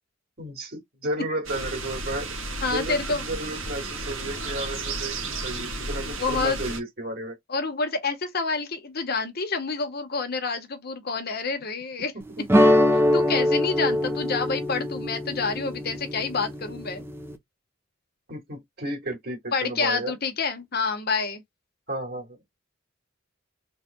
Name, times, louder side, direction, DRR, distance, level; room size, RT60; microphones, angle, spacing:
voice 1, 0.4-2.3 2.7-7.4 12.4-12.5 18.3-20.1 21.9-22.4, right 1 dB, 50° right, 2.3 m, -33 dB
sound 1, 1.4-6.8, right 2 dB, 80° right, 1.7 m, -33 dB
voice 2, 2.6-3.2 6.0-6.6 7.5-12.1 13.1-17.0 19.5-21.4, left 4 dB, 50° left, 1.2 m, -28 dB
sound 2, 12.5-17.4, left 1 dB, 10° right, 0.8 m, -23 dB
4.2 x 3.3 x 2.3 m
head